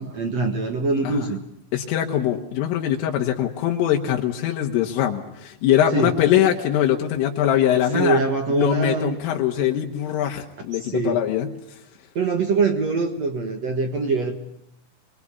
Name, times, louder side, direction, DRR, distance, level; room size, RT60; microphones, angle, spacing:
voice 1, 0.0-1.4 5.9-6.1 7.9-9.1 10.8-11.2 12.1-14.3, right 4 dB, 70° right, 6 dB, 1.5 m, -23 dB
voice 2, 1.7-8.2 8.5-11.5, left 11 dB, 80° left, 1 dB, 4.1 m, -22 dB
27.0 x 21.5 x 8.4 m, 0.74 s
omnidirectional pair, 5.7 m